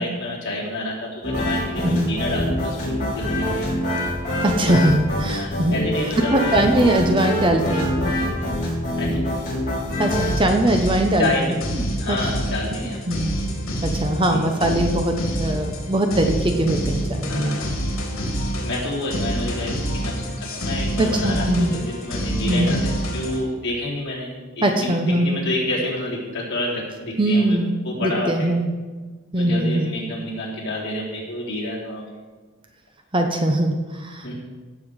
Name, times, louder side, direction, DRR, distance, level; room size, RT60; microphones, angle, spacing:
voice 1, 0.0-3.7 5.3-6.9 9.0-9.2 11.2-11.4 12.0-13.0 14.2-14.6 17.3-17.8 18.6-24.9 25.2-27.6 27.8-28.5 29.4-32.0 34.2-34.3, left 1 dB, 55° left, -5 dB, 3.7 m, -29 dB
sound 1, 1.2-10.3, left 1 dB, 35° left, 3.9 m, -25 dB
voice 2, 1.8-2.1 4.4-5.8 6.3-8.0 10.0-12.2 13.1-13.4 13.8-17.6 21.0-21.7 22.5-22.8 24.6-25.4 27.2-27.7 28.0-28.7 29.3-29.9 33.1-34.3, right 1 dB, 25° right, 4 dB, 0.8 m, -21 dB
sound 2, 9.9-23.4, equal, 70° left, 3.3 m, -27 dB
16.0 x 7.2 x 4.8 m, 1.3 s
head